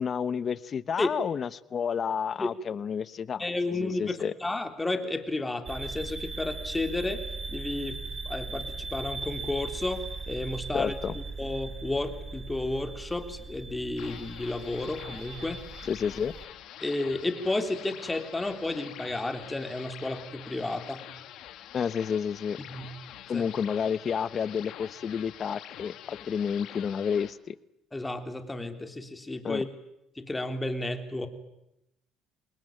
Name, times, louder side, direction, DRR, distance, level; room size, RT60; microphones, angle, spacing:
voice 1, 0.0-3.4 3.8-4.3 10.7-11.2 15.9-16.3 21.7-22.6 23.3-27.5 29.4-29.6, left 7 dB, 45° left, 17 dB, 1.1 m, -30 dB
voice 2, 3.4-7.2 7.5-10.9 11.4-15.6 16.8-21.1 22.7-22.9 23.3-23.5 27.9-29.7 30.1-31.3, left 2 dB, 15° left, 7 dB, 3.5 m, -32 dB
sound 1, 5.6-16.4, right 3 dB, 30° right, 3.5 m, -39 dB
sound 2, 14.0-27.3, left 12 dB, 70° left, 2.0 m, -46 dB
27.0 x 20.5 x 9.0 m, 0.84 s
supercardioid pair, 80°, 0 cm